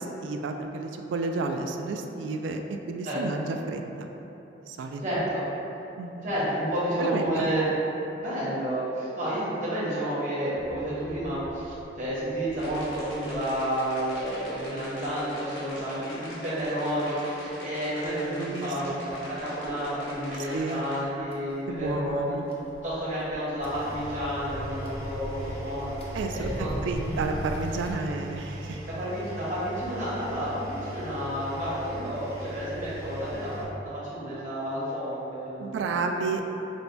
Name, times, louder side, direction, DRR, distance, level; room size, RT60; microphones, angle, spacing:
voice 1, 0.0-4.1 4.7-5.0 6.0-6.3 7.0-7.5 18.4-19.0 20.5-20.9 21.7-22.5 26.1-28.8 35.6-36.4, right 3 dB, 85° right, 4 dB, 0.3 m, -31 dB
voice 2, 5.0-5.4 6.2-7.7 8.2-22.4 22.8-26.7 28.9-35.9, equal, 45° right, -9 dB, 1.2 m, -31 dB
sound 1, 10.6-27.9, equal, 35° left, 0.5 m, -42 dB
sound 2, 12.6-21.0, equal, 85° left, 0.9 m, -43 dB
Engine, 23.6-33.6, equal, 15° right, 0.5 m, -40 dB
5.9 x 2.2 x 2.7 m, 3.0 s
head